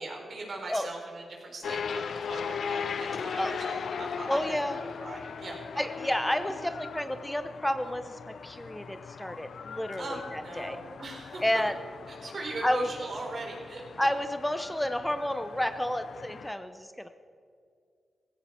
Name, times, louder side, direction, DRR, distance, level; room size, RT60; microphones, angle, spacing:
voice 1, 0.0-5.9 10.0-11.4 12.1-13.8, right 2 dB, 60° right, 0 dB, 4.0 m, -40 dB
sound 1, 1.6-16.5, left 6 dB, 75° left, 0.5 m, -39 dB
voice 2, 4.3-4.8 5.8-10.8 11.4-11.7 12.6-12.9 14.0-17.1, left 1 dB, 10° left, 9 dB, 0.7 m, -30 dB
16.0 x 15.5 x 4.4 m, 2.3 s
cardioid pair, 65°, 0 cm